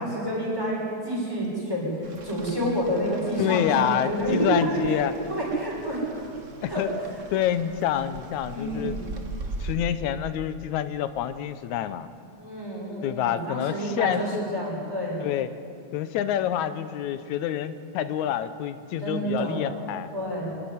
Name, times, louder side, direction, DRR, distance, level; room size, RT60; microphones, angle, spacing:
voice 1, 0.0-5.0 5.3-6.3 6.7-6.9 8.5-9.0 12.4-15.2 19.0-19.7 20.1-20.5, right 1 dB, 5° right, -5 dB, 6.0 m, -29 dB
Rain, 2.0-9.8, right 3 dB, 45° right, 1.0 m, -41 dB
voice 2, 3.4-5.1 6.6-6.9 7.3-9.0 9.6-12.1 13.0-14.4 15.2-15.5 15.9-20.1, left 10 dB, 85° left, 12 dB, 2.2 m, -27 dB
26.5 x 10.5 x 9.7 m, 2.4 s
omnidirectional pair, 3.3 m